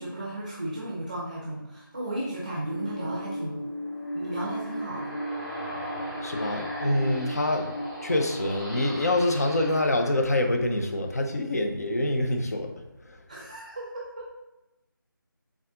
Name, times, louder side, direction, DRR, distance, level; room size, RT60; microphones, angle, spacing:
voice 1, 0.0-3.6 4.1-5.1 13.3-14.3, right 1 dB, 20° right, -5 dB, 0.6 m, -34 dB
sound 1, 2.7-9.9, equal, 85° left, 1.0 m, -36 dB
sound 2, 3.6-11.1, equal, 10° left, 1.5 m, -40 dB
voice 2, 6.2-7.7 8.0-12.7 13.1-13.2, left 1 dB, 45° left, 4 dB, 0.6 m, -26 dB
4.0 x 3.5 x 3.6 m, 0.98 s
figure-of-eight pair, 165°, 12 cm